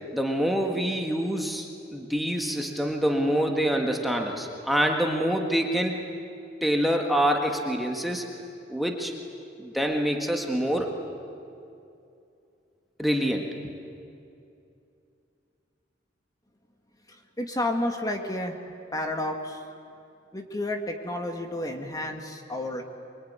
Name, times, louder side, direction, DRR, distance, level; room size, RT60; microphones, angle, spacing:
voice 1, 0.1-6.0 6.6-8.3 8.7-9.1 9.6-11.0 13.0-13.5, equal, ahead, 2 dB, 1.7 m, -26 dB
voice 2, 17.1-18.6 18.9-19.6 20.3-22.8, left 1 dB, 20° left, 4 dB, 1.8 m, -31 dB
23.5 x 23.5 x 9.5 m, 2.6 s
head